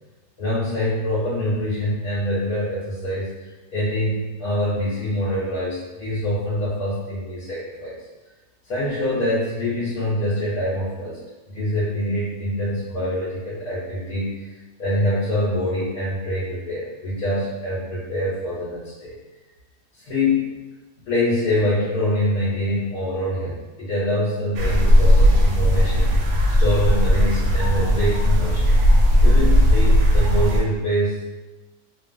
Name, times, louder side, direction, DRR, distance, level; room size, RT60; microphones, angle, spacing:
voice 1, 0.4-8.0 8.6-11.2 11.5-14.5 14.8-19.2 20.0-20.5 21.1-26.1 26.6-28.7 29.2-31.2, left 1 dB, 90° left, -10 dB, 1.3 m, -25 dB
sound 1, 24.6-30.6, equal, 90° right, 1.1 m, -16 dB
2.8 x 2.3 x 2.5 m, 1.1 s
omnidirectional pair, 1.5 m